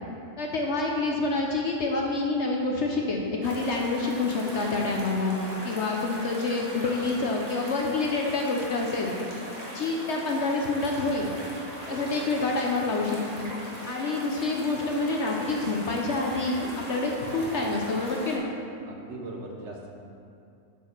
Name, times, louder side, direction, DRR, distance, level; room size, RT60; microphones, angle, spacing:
voice 1, 0.4-9.2 9.7-11.3 11.9-13.5 13.9-16.6 16.9-18.4, left 3 dB, 55° left, 0 dB, 0.9 m, -27 dB
sound 1, 3.4-18.4, equal, 25° right, 1.4 m, -39 dB
voice 2, 18.9-19.9, right 2 dB, 55° right, 0 dB, 1.0 m, -39 dB
7.9 x 4.6 x 6.6 m, 2.5 s
omnidirectional pair, 1.6 m